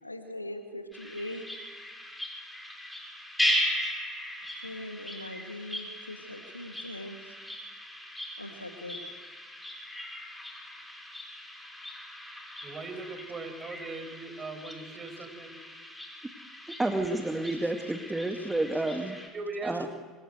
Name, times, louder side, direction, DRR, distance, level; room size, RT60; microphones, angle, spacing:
voice 1, 0.0-1.5 4.6-7.2 8.4-9.0 17.6-17.7 18.4-18.5, left 1 dB, 90° left, 7 dB, 2.0 m, -41 dB
sound 1, 0.9-19.3, equal, 5° left, 7.0 m, -37 dB
voice 2, 12.6-15.6 19.3-19.9, right 3 dB, 30° right, 8 dB, 5.7 m, -39 dB
voice 3, 16.7-19.2 19.6-19.9, right 2 dB, 10° right, 5 dB, 2.3 m, -30 dB
26.0 x 25.0 x 8.2 m, 1.4 s
figure-of-eight pair, 65°, 0 cm